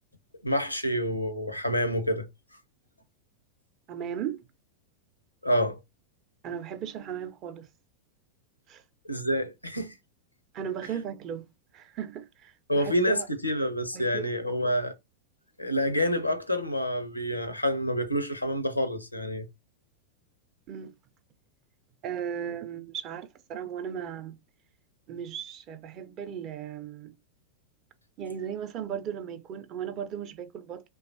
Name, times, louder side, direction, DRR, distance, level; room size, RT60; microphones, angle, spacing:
voice 1, 0.4-2.3 5.4-5.8 9.0-10.0 12.7-14.9 15.6-19.5, equal, 85° left, 0.5 m, -28 dB
voice 2, 3.9-4.4 6.4-7.7 8.7-8.8 10.5-11.5 11.7-13.3 13.9-14.5 20.7-20.9 22.0-24.4 25.1-27.2 28.2-30.8, right 8 dB, 35° right, 0.5 m, -36 dB
3.1 x 2.3 x 2.5 m
figure-of-eight pair, 90°, 0 cm